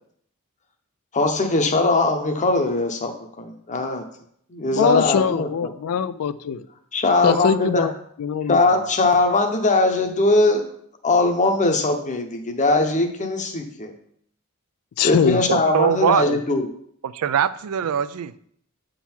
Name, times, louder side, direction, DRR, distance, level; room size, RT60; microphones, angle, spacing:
voice 1, 1.1-3.1 3.4-4.0 4.5-5.7 6.9-7.9 8.5-10.7 11.0-13.9 15.0-16.7, left 2 dB, 35° left, 5 dB, 0.8 m, -20 dB
voice 2, 4.7-6.6 7.2-7.9 8.2-8.6 15.0-15.4 16.2-16.4, left 7 dB, 75° left, 14 dB, 0.4 m, -22 dB
voice 3, 15.5-16.2 17.0-18.3, right 8 dB, 70° right, 14 dB, 0.4 m, -22 dB
8.3 x 3.8 x 4.4 m, 0.67 s
head